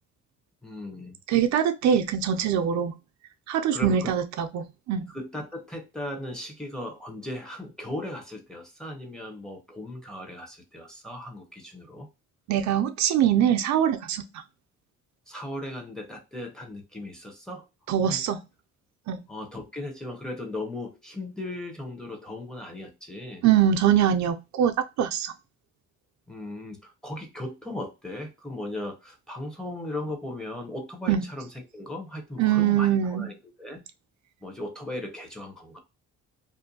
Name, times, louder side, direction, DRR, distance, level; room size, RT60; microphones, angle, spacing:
voice 1, 0.6-1.2 3.7-4.1 5.1-12.1 15.3-17.7 18.0-18.2 19.3-23.4 26.3-33.8 34.4-35.8, left 1 dB, ahead, 0.8 m, -37 dB
voice 2, 1.3-2.9 3.5-5.1 12.5-14.4 17.9-18.4 19.1-19.2 23.4-25.3 31.1-31.3 32.4-33.3, right 9 dB, 70° right, 0.4 m, -23 dB
2.5 x 2.2 x 2.6 m
cardioid pair, 90°, 30 cm